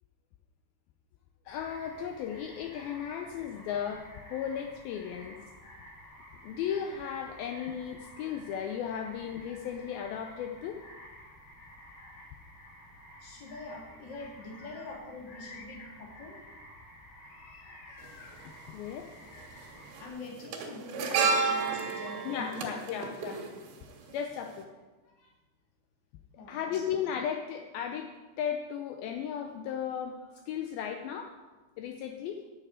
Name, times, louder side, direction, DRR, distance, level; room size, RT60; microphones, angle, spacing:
voice 1, 1.5-5.4 6.4-10.8 14.1-14.3 15.3-15.9 17.2-19.1 22.2-23.5 24.1-24.7 26.5-31.3 31.8-32.4, left 8 dB, 85° left, 4 dB, 2.1 m, -36 dB
sound 1, 1.5-20.1, left 1 dB, 65° left, 5.3 m, -52 dB
voice 2, 13.2-16.4 19.5-19.6 20.0-22.9 25.0-25.3 26.4-26.8, left 2 dB, 30° left, -2 dB, 2.4 m, -44 dB
sound 2, 18.0-18.1 19.3-19.6 19.9-24.2 24.4-24.6, right 5 dB, 85° right, 3.8 m, -31 dB
10.5 x 6.7 x 8.7 m, 1.2 s
omnidirectional pair, 5.1 m